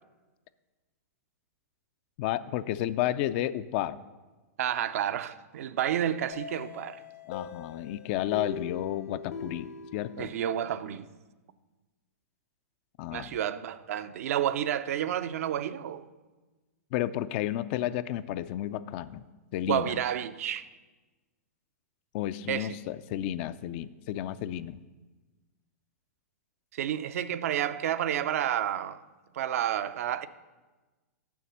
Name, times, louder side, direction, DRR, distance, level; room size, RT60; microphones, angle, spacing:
voice 1, 2.2-4.0 7.3-10.3 13.0-13.4 16.9-19.2 19.5-20.0 22.1-24.8, left 12 dB, 45° left, 0.4 m, -32 dB
voice 2, 4.6-7.0 10.2-11.1 13.1-16.1 19.6-20.7 22.5-22.7 26.7-29.0 29.3-30.3, right 10 dB, 65° right, 0.5 m, -30 dB
sound 1, 6.3-11.0, left 5 dB, 75° left, 1.2 m, -42 dB
7.1 x 6.0 x 7.2 m
hypercardioid pair, 125°, 8 cm